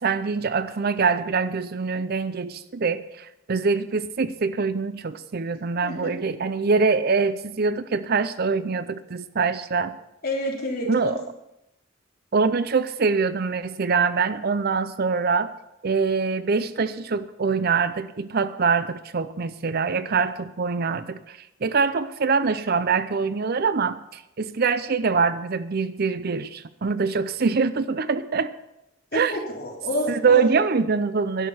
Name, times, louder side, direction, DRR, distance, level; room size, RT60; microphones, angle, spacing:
voice 1, 0.0-9.9 10.9-11.2 12.3-15.5 15.8-28.5 29.1-29.3 30.1-31.5, right 5 dB, 50° right, 14 dB, 0.6 m, -24 dB
voice 2, 10.2-11.2 29.1-30.4, left 1 dB, 50° left, -2 dB, 3.4 m, -29 dB
11.0 x 6.7 x 9.3 m, 0.86 s
head